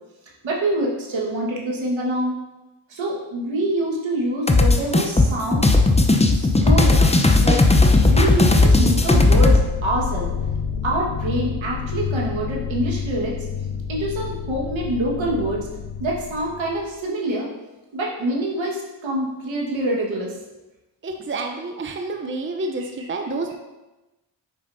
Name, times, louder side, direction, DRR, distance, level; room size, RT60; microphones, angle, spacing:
voice 1, 0.4-2.4 2.9-5.7 6.3-7.1 7.4-7.6 8.0-10.3 10.8-13.4 13.9-15.7 16.0-17.5 17.9-20.4 23.0-23.1, right 1 dB, 65° right, -2 dB, 1.6 m, -25 dB
sound 1, 4.5-9.6, left 2 dB, 15° left, 0.7 m, -15 dB
sound 2, 9.0-16.9, left 6 dB, 80° left, 1.1 m, -29 dB
voice 2, 21.0-23.5, right 2 dB, 25° right, 4 dB, 0.6 m, -29 dB
6.9 x 5.0 x 2.7 m, 1.1 s
supercardioid pair, 45°, 50 cm